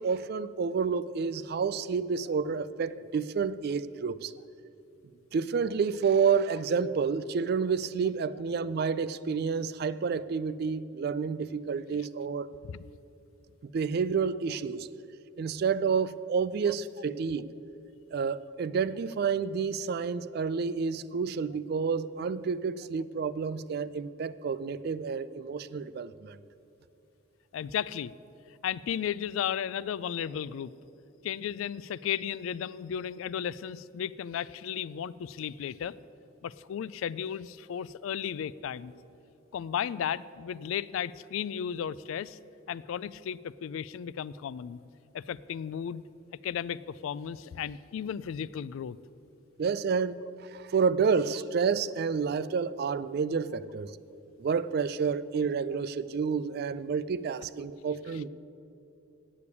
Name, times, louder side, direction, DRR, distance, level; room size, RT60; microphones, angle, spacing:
voice 1, 0.0-4.3 5.3-12.5 13.7-14.9 15.4-17.5 18.1-26.4 49.6-54.0 54.4-58.3, right 5 dB, 50° right, 16 dB, 0.3 m, -29 dB
voice 2, 27.5-28.1 28.6-30.7 31.2-35.9 36.4-38.9 39.5-42.4 42.7-44.8 45.1-46.0 46.4-49.0, left 8 dB, 80° left, 20 dB, 0.3 m, -34 dB
8.6 x 8.4 x 8.3 m, 2.8 s
head